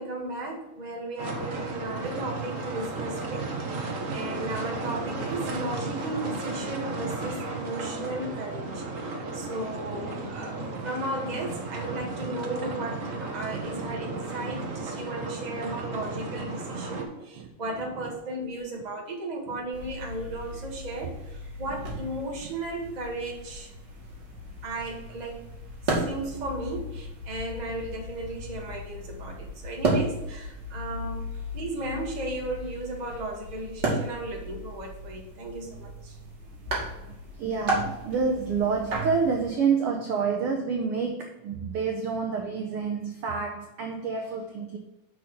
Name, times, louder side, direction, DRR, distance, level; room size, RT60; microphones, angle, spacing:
voice 1, 0.0-23.7 24.6-25.4 25.8-31.3 31.5-36.2, right 1 dB, 20° right, 0 dB, 1.2 m, -35 dB
sound 1, 1.2-17.0, right 3 dB, 90° right, 0.7 m, -34 dB
voice 2, 13.5-14.0 14.7-14.9 15.2-15.5 17.2-18.1 19.5-19.6 21.7-21.8 22.4-22.5 24.5-24.6 36.6-36.7 37.0-44.8, right 5 dB, 70° right, 3 dB, 1.4 m, -29 dB
sound 2, 19.7-39.5, right 1 dB, 35° right, 2.3 m, -34 dB
6.2 x 5.5 x 6.3 m, 0.96 s
omnidirectional pair, 3.5 m